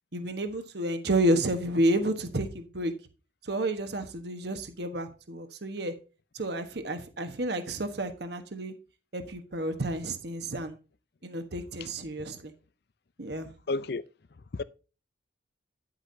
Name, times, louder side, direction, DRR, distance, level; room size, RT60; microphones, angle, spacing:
voice 1, 0.1-2.9 3.4-5.9 6.3-8.7 9.1-10.8 11.2-12.5 13.2-13.5, right 1 dB, 55° right, 1.2 m, -30 dB
voice 2, 13.7-14.0 14.5-14.6, left 3 dB, 55° left, 0.5 m, -31 dB
10.0 x 8.1 x 2.7 m
head